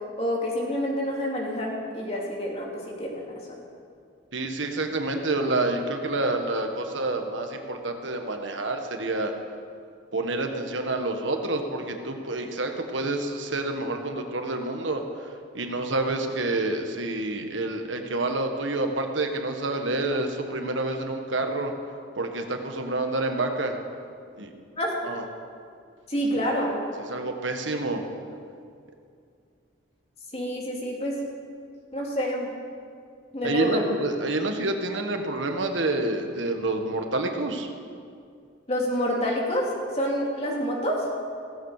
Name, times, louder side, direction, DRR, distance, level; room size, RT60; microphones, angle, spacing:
voice 1, 0.2-3.2 3.5-3.6 24.8-24.9 26.1-26.7 30.3-31.2 31.9-32.5 33.3-33.9 38.7-39.7 39.9-41.0, equal, 30° left, -2 dB, 2.7 m, -27 dB
voice 2, 4.3-9.3 10.1-15.0 15.5-21.7 22.2-23.7 24.4-24.5 25.0-25.2 26.3-26.5 27.1-28.0 33.4-37.7, right 2 dB, 85° right, 4 dB, 1.4 m, -28 dB
17.0 x 16.0 x 4.9 m, 2.3 s
head